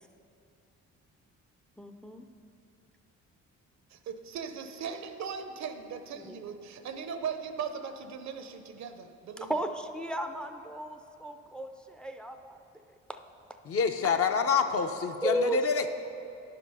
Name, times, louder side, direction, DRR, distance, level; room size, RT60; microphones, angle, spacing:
voice 1, 1.8-2.2 6.1-6.4 9.5-12.6 15.2-15.6, equal, 5° left, 6 dB, 0.4 m, -34 dB
voice 2, 3.9-9.6, right 6 dB, 65° right, 8 dB, 0.7 m, -38 dB
voice 3, 13.7-15.9, left 5 dB, 50° left, 6 dB, 0.7 m, -27 dB
10.0 x 5.3 x 5.5 m, 2.6 s
cardioid pair, 90°, 30 cm